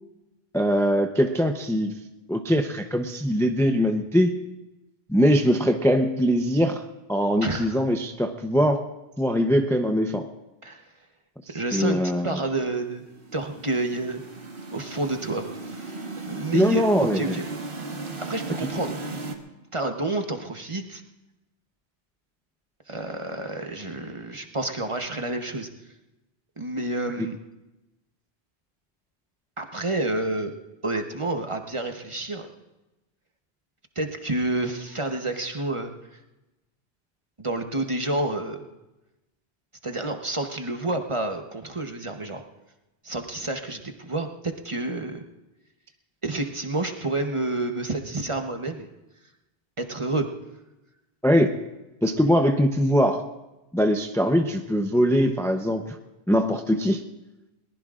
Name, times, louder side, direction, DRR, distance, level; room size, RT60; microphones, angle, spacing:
voice 1, 0.5-1.9 2.3-4.3 5.1-6.8 7.1-8.8 9.2-10.3 11.7-12.4 16.5-17.4 27.2-27.3 51.2-51.5 52.0-53.2 53.7-56.0 56.3-57.0, equal, 5° left, 5 dB, 0.6 m, -22 dB
voice 2, 7.4-7.8 10.6-10.8 11.5-13.0 13.3-14.2 14.7-16.0 16.3-17.5 18.2-18.9 19.7-21.0 22.9-25.7 26.6-27.4 29.6-30.5 30.8-32.5 34.0-35.9 37.4-38.6 39.8-42.4 43.0-45.2 46.2-48.9 49.8-50.3, right 2 dB, 30° right, 5 dB, 1.0 m, -29 dB
sound 1, 12.9-19.4, right 3 dB, 55° right, 1.5 m, -36 dB
22.0 x 19.5 x 2.5 m, 1.0 s
omnidirectional pair, 1.1 m